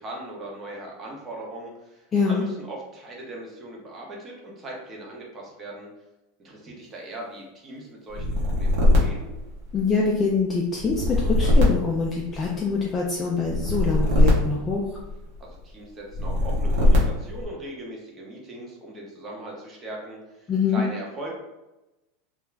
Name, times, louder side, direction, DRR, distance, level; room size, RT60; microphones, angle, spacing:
voice 1, 0.0-5.9 6.4-9.3 15.6-21.3, right 1 dB, 25° right, -2 dB, 0.7 m, -39 dB
voice 2, 2.1-2.4 9.7-15.0 20.5-20.8, left 4 dB, 20° left, -3 dB, 0.4 m, -24 dB
sound 1, 8.1-10.1 10.8-12.7 13.4-15.4 16.1-17.4, left 1 dB, 60° right, 0.9 m, -21 dB
2.4 x 2.0 x 3.2 m, 0.98 s
supercardioid pair, 140°, 0 cm